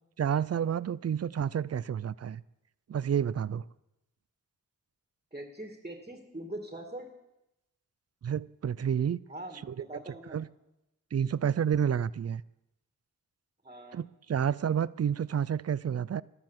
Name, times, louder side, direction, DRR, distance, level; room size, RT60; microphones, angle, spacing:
voice 1, 0.2-2.4 2.9-3.6 8.2-9.2 9.7-9.8 10.3-10.5 11.1-12.4 13.9-16.2, right 8 dB, 45° right, 0.5 m, -29 dB
voice 2, 5.3-7.1 9.3-10.4 13.6-14.0, right 1 dB, 20° right, 2.3 m, -42 dB
13.0 x 12.5 x 7.5 m
cardioid pair, 60°, 34 cm